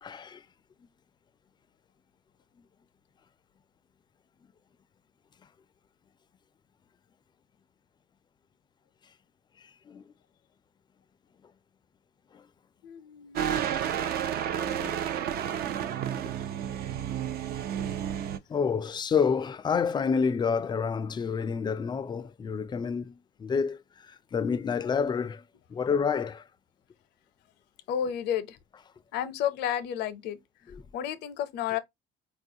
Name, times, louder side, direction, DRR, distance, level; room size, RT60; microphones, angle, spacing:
voice 1, 0.0-0.4 9.6-10.0 12.3-12.4 14.0-14.3 14.5-15.1 18.5-25.4 25.7-26.5 30.7-30.8, left 6 dB, 25° left, 0.3 m, -29 dB
voice 2, 12.8-13.6 27.9-28.6 29.1-30.4 30.9-31.8, left 9 dB, 80° left, 0.6 m, -31 dB
sound 1, 13.3-18.4, right 9 dB, 65° right, 0.5 m, -31 dB
4.3 x 2.3 x 2.6 m
cardioid pair, 110°, 17 cm